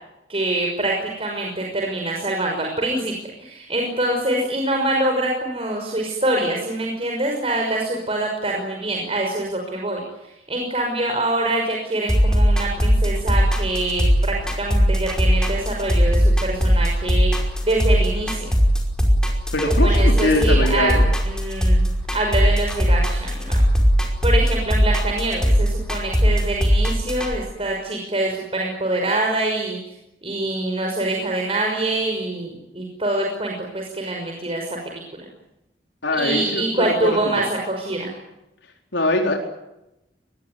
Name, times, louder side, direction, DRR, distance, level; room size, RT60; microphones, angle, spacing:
voice 1, 0.3-3.1 3.4-10.0 10.5-17.3 17.6-18.5 19.7-20.9 21.2-23.6 24.2-29.8 30.2-35.3 36.1-38.1, right 2 dB, 35° right, 0 dB, 5.8 m, -25 dB
sound 1, 12.1-27.3, equal, 5° left, 5.2 m, -19 dB
voice 2, 19.5-21.1 36.0-37.5 38.9-39.3, left 1 dB, 85° left, 1 dB, 4.3 m, -22 dB
24.0 x 21.5 x 9.5 m, 0.90 s
head